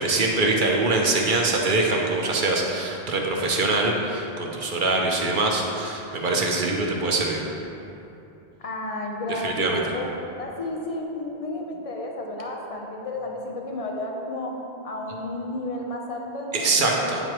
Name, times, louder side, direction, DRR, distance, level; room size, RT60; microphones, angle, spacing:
voice 1, 0.0-7.4 9.3-9.8 16.5-17.2, right 2 dB, 55° right, 0 dB, 0.8 m, -23 dB
voice 2, 8.6-10.1 10.4-14.6 14.8-17.2, left 2 dB, 40° left, 0 dB, 0.7 m, -32 dB
8.8 x 4.7 x 3.0 m, 2.8 s
omnidirectional pair, 1.1 m